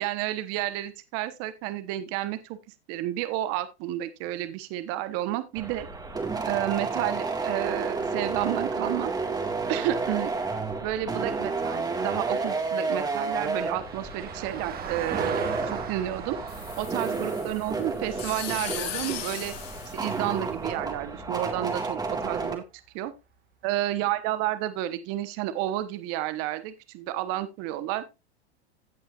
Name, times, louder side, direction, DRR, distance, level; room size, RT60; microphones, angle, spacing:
voice 1, 0.0-2.6 2.9-5.9 6.4-9.1 9.7-10.3 10.8-16.4 16.8-19.5 19.9-22.6 22.9-23.1 23.6-28.0, right 14 dB, 45° right, 12 dB, 1.1 m, -31 dB
sound 1, 5.5-22.6, right 4 dB, 10° right, 1.8 m, -31 dB
Vehicle, 10.7-20.3 22.6-22.7, right 8 dB, 30° right, 1.6 m, -41 dB
sound 2, 16.5-20.8, left 10 dB, 65° left, 2.5 m, -38 dB
16.5 x 5.6 x 2.4 m, 0.25 s
hypercardioid pair, 125°, 32 cm